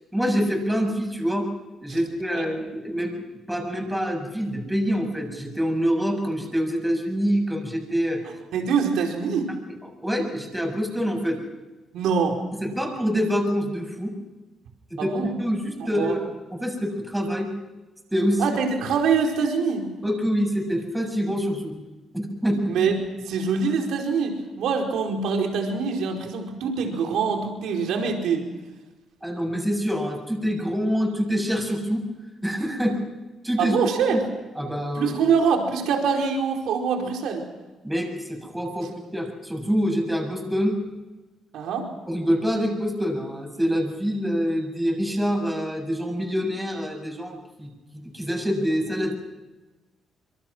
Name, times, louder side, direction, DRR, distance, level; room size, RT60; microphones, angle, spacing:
voice 1, 0.1-1.5 1.8-3.2 3.5-8.2 10.0-11.4 12.6-14.1 14.9-16.2 16.5-17.5 18.1-18.6 20.0-21.7 22.1-22.7 29.2-32.0 32.4-33.0 33.4-33.8 34.1-34.2 34.6-35.2 37.8-40.8 42.1-49.1, equal, 5° right, 2 dB, 7.4 m, -26 dB
voice 2, 8.5-9.5 11.9-12.4 15.0-15.3 15.9-16.2 18.4-19.9 22.7-22.9 23.2-28.4 33.6-34.2 35.0-37.4 41.5-41.9, right 5 dB, 80° right, 2 dB, 4.7 m, -24 dB
26.0 x 23.0 x 6.3 m, 1.1 s
cardioid pair, 90°, 0 cm